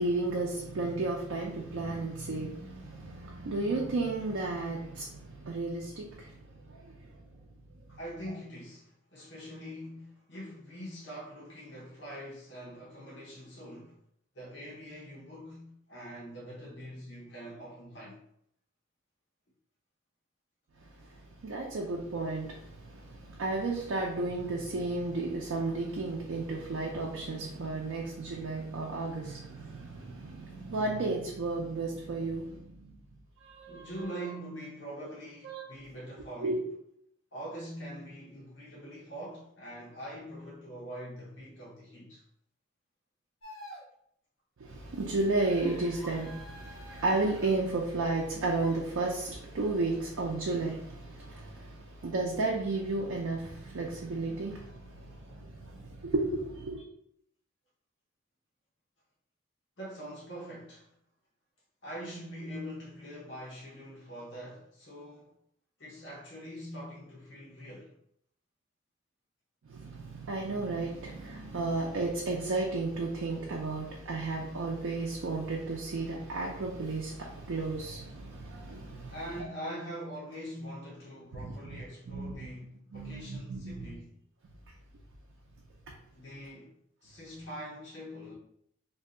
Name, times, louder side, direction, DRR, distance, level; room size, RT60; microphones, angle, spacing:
voice 1, 0.0-7.1 21.1-33.0 33.4-33.9 35.4-35.6 36.4-36.6 44.6-56.8 69.7-79.5 81.3-82.5 82.9-83.9 85.9-86.0, right 2 dB, 80° right, 0.5 m, -33 dB
voice 2, 7.9-14.0 14.3-18.2 33.7-36.6 37.3-42.2 59.8-60.9 61.8-65.3 65.8-68.0 79.1-84.1 86.1-86.7 87.0-88.3, equal, 60° left, 0.8 m, -43 dB
sound 1, 43.4-43.9 45.4-47.5 48.5-48.8, left 1 dB, 90° left, 0.8 m, -48 dB
2.6 x 2.2 x 3.7 m
head